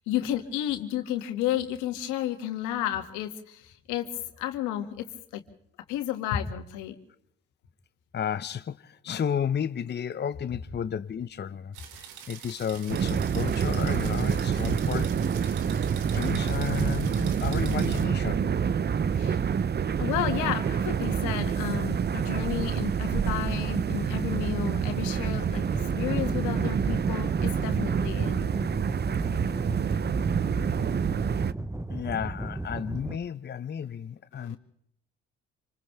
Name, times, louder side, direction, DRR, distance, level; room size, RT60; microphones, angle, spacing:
voice 1, 0.1-4.1 4.4-5.4 5.9-7.0 19.2-19.4 20.0-25.6 26.0-28.4 34.3-34.6, left 12 dB, 85° left, 2.3 m, -32 dB
voice 2, 8.1-15.3 16.1-18.5 31.9-34.6, left 8 dB, 35° left, 0.8 m, -33 dB
sound 1, 11.7-18.1, right 9 dB, 80° right, 2.4 m, -45 dB
sound 2, 12.9-31.5, right 7 dB, 35° right, 0.7 m, -27 dB
sound 3, 25.5-33.2, right 1 dB, 10° right, 1.0 m, -35 dB
27.5 x 26.5 x 3.5 m
supercardioid pair, 65°, 30 cm